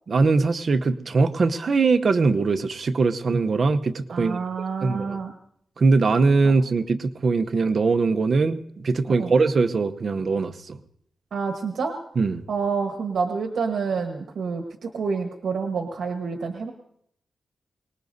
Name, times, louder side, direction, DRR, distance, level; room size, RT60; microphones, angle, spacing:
voice 1, 0.1-4.4 4.8-5.2 5.8-10.8 12.2-12.4, right 4 dB, 45° right, 8 dB, 0.7 m, -21 dB
voice 2, 4.1-5.3 9.1-9.3 11.3-11.9 12.5-16.7, right 5 dB, 75° right, 4 dB, 1.2 m, -28 dB
24.0 x 19.5 x 2.7 m, 0.74 s
wide cardioid pair, 160°, 0 cm